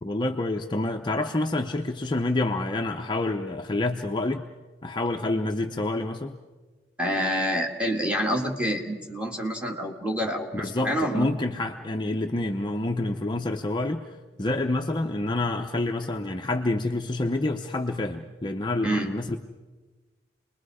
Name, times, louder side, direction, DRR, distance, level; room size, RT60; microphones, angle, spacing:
voice 1, 0.0-4.5 4.8-6.4 10.5-19.4, left 2 dB, 25° left, 4 dB, 0.6 m, -28 dB
voice 2, 7.0-11.3 18.8-19.1, equal, 5° right, -1 dB, 2.0 m, -27 dB
28.5 x 21.0 x 4.9 m, 1.3 s
head